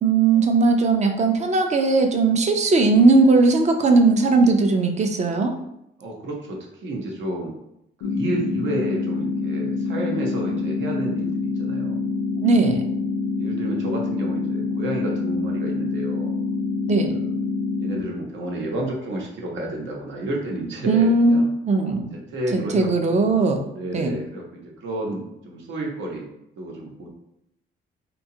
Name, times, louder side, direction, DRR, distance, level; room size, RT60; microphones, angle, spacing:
voice 1, 0.0-5.5 12.4-12.9 16.9-17.2 20.9-22.1 22.5-23.6 23.9-24.1, right 3 dB, 35° right, 5 dB, 0.4 m, -18 dB
voice 2, 6.0-7.5 8.0-12.0 13.4-16.3 17.1-17.3 17.8-21.5 22.3-23.3 23.7-26.3 26.6-27.1, right 1 dB, 75° right, -1 dB, 0.8 m, -30 dB
sound 1, 8.0-18.0, left 4 dB, 85° left, 0.5 m, -26 dB
2.8 x 2.3 x 2.7 m, 0.80 s
cardioid pair, 90°, 20 cm